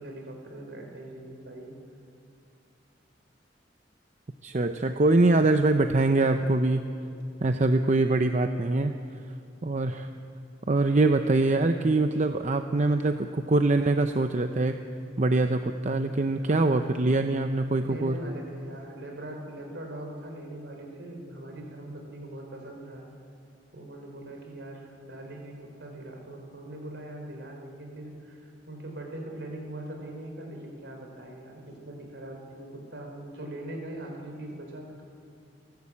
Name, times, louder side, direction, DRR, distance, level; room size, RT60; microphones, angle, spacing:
voice 1, 0.0-1.7 16.5-17.0 17.8-23.1 23.7-35.0, right 1 dB, 65° right, 2 dB, 4.1 m, -41 dB
voice 2, 4.4-6.8 7.4-9.0 9.6-10.1 10.7-14.8 15.2-18.1, right 2 dB, 40° right, 7 dB, 0.6 m, -23 dB
29.0 x 11.5 x 8.6 m, 2.5 s
head